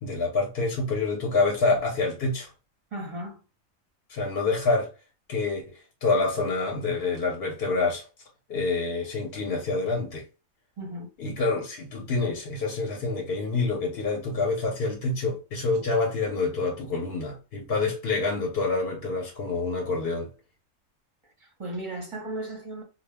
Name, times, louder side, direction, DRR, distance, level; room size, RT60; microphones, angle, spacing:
voice 1, 0.0-2.5 4.1-4.9 5.3-5.7 6.0-8.0 8.5-10.2 11.2-20.3, left 3 dB, 55° left, 0.8 m, -27 dB
voice 2, 2.9-3.4 10.8-11.1 21.4-22.8, right 1 dB, 30° right, 0.6 m, -35 dB
2.2 x 2.0 x 3.3 m
omnidirectional pair, 1.4 m